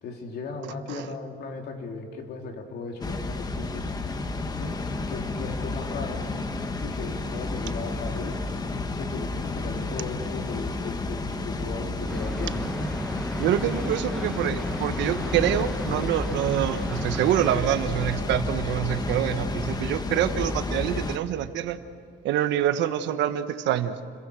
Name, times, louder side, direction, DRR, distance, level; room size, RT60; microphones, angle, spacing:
voice 1, 0.0-3.9 4.5-4.8 5.1-6.3 6.8-8.4 9.0-12.7, left 4 dB, 60° left, 2 dB, 3.3 m, -37 dB
Water, 3.0-21.2, left 3 dB, 20° left, 1.2 m, -31 dB
sound 1, 12.1-17.6, equal, ahead, 1.3 m, -35 dB
voice 2, 13.4-21.8 22.2-23.9, right 11 dB, 75° right, 10 dB, 1.3 m, -26 dB
29.5 x 22.5 x 6.4 m, 2.2 s
cardioid pair, 155°, 19 cm